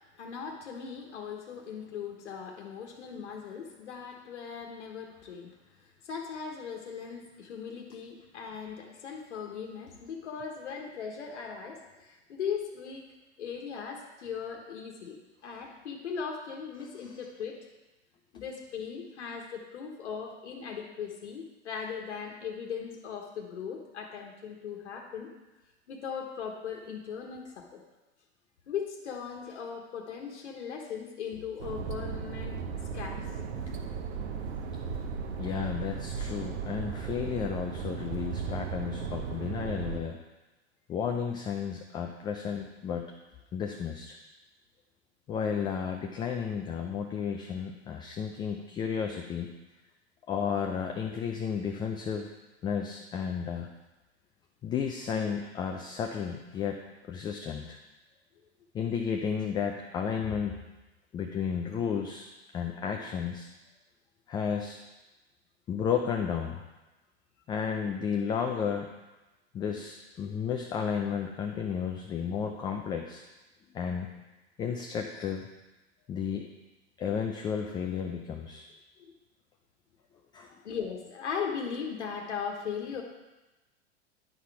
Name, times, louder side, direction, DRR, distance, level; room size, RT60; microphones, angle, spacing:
voice 1, 0.2-5.5 6.0-13.1 13.4-17.6 18.3-25.3 25.9-27.8 28.7-32.6 32.9-33.3 80.6-83.0, left 6 dB, 80° left, 1 dB, 1.3 m, -38 dB
sound 1, 31.6-40.0, right 6 dB, 75° right, 1.0 m, -36 dB
voice 2, 35.4-40.2 40.9-43.1 43.5-44.2 45.3-49.5 50.3-52.3 52.6-53.7 54.6-56.8 57.1-57.8 58.7-60.6 61.1-62.3 62.5-63.5 64.3-64.8 65.7-66.6 67.5-68.9 69.5-73.2 73.7-74.1 74.6-75.5 76.1-76.5 77.0-78.7 80.3-80.5, left 7 dB, 15° left, 2 dB, 0.3 m, -32 dB
10.5 x 4.0 x 4.8 m, 1.1 s
hypercardioid pair, 115°, 34 cm